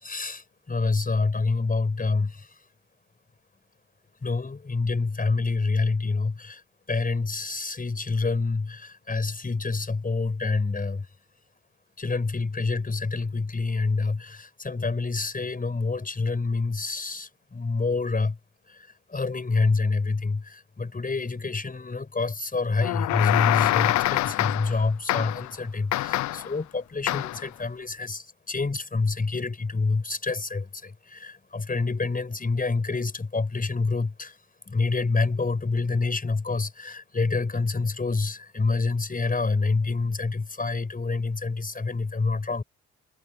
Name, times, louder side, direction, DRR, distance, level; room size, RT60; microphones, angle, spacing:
voice 1, 0.0-2.5 4.2-6.6 6.9-11.0 12.0-18.4 19.1-34.3 34.7-42.6, left 3 dB, 25° left, 6.4 m, -27 dB
sound 1, 22.8-24.8 25.1-25.5 25.9-26.5 27.1-27.5, left 16 dB, 65° left, 0.6 m, -25 dB
supercardioid pair, 60°, 31 cm